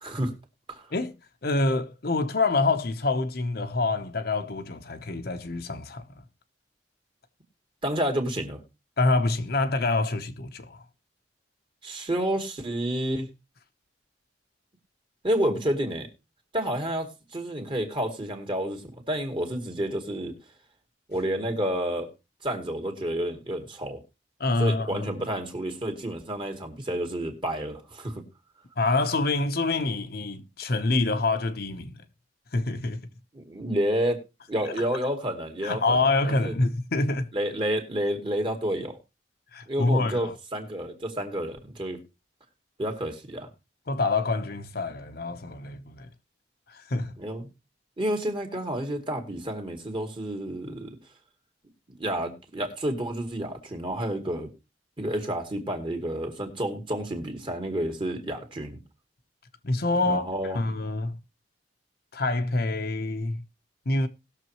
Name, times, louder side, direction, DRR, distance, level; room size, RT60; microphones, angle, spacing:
voice 1, 0.0-0.3 0.7-0.8 7.8-8.6 11.8-13.3 15.2-16.1 16.5-20.3 21.1-22.1 22.4-24.0 24.6-28.2 33.3-34.2 34.5-36.0 36.2-36.5 37.3-39.0 39.7-42.0 42.8-43.5 47.2-47.5 48.0-51.0 52.0-54.5 55.0-58.8 60.0-60.6, right 1 dB, 30° right, 2.2 m, -30 dB
voice 2, 1.4-6.0 9.0-10.8 24.4-25.1 28.8-32.0 32.5-33.0 35.6-37.3 39.5-40.3 43.9-46.1 46.7-47.1 59.6-60.3 60.5-61.2 62.1-63.4 63.9-64.1, left 2 dB, 60° left, 1.0 m, -26 dB
19.5 x 6.8 x 3.1 m
head